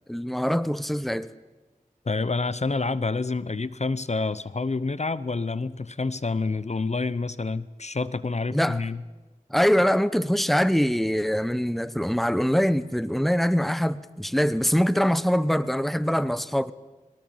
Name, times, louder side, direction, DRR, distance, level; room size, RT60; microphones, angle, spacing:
voice 1, 0.1-1.3 8.5-8.8 9.5-16.7, equal, ahead, 1.0 m, -23 dB
voice 2, 2.0-9.0, left 3 dB, 50° left, 0.8 m, -28 dB
22.0 x 20.0 x 7.9 m
wide cardioid pair, 45°, 14 cm